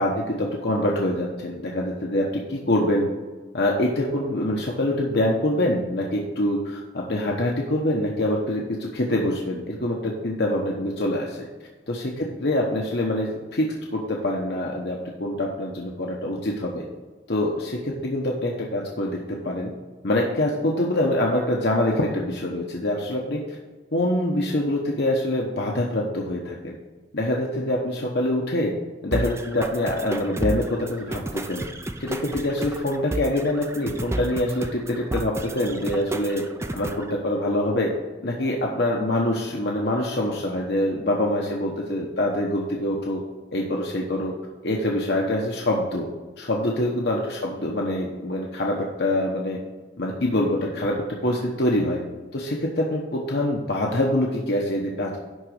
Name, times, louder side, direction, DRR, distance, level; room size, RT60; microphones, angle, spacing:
voice 1, 0.0-3.1 3.5-11.5 11.9-16.8 17.3-19.2 19.4-19.7 20.0-23.4 23.9-26.7 27.1-28.7 29.0-31.6 32.0-36.4 36.7-37.9 38.2-43.2 43.5-44.3 44.6-46.1 46.4-49.6 50.0-52.0 52.3-55.2, left 1 dB, 60° left, -2 dB, 1.1 m, -25 dB
sound 1, 29.1-37.1, right 1 dB, 15° right, 0.5 m, -32 dB
11.0 x 4.0 x 6.5 m, 1.3 s
head